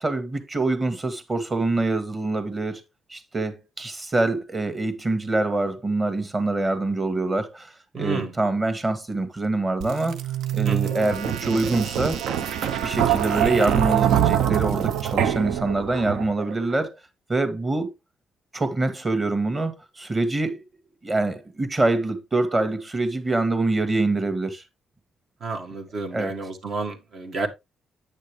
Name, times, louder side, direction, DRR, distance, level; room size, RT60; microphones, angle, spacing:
voice 1, 0.0-2.8 3.1-10.2 10.5-12.2 12.8-16.9 17.3-17.9 18.5-20.6 21.0-24.6 26.1-26.3, right 2 dB, 25° right, 1.9 m, -25 dB
voice 2, 7.9-8.3 10.7-11.0 25.4-27.5, right 3 dB, 60° right, 1.9 m, -30 dB
sound 1, 9.8-16.5, right 10 dB, 80° right, 0.7 m, -24 dB
9.0 x 6.4 x 3.2 m
cardioid pair, 90°, 0 cm